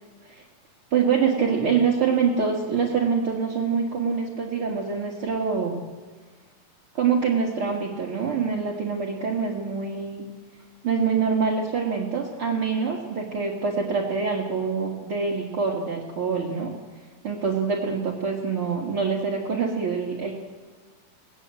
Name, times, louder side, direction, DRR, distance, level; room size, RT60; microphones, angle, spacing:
voice 1, 0.9-5.8 6.9-10.3 10.8-16.7 17.2-20.3, right 5 dB, 45° right, -3 dB, 2.6 m, -25 dB
28.5 x 18.5 x 7.8 m, 1.4 s
omnidirectional pair, 3.7 m